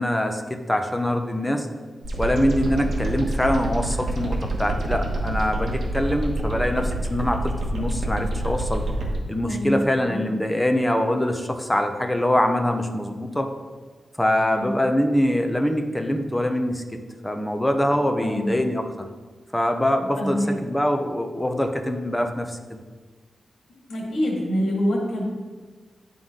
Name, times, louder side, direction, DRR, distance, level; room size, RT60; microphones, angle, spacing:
voice 1, 0.0-1.7 2.2-8.8 9.3-13.5 14.2-16.8 17.2-19.1 19.5-22.8, left 1 dB, 5° left, 5 dB, 0.5 m, -24 dB
sound 1, 2.0-9.2, right 1 dB, 55° right, 1.1 m, -27 dB
voice 2, 9.4-10.2 14.5-14.8 18.2-18.6 20.2-20.6 23.9-25.2, equal, 80° left, -2 dB, 1.9 m, -26 dB
10.5 x 3.8 x 3.6 m, 1.4 s
wide cardioid pair, 160°, 0 cm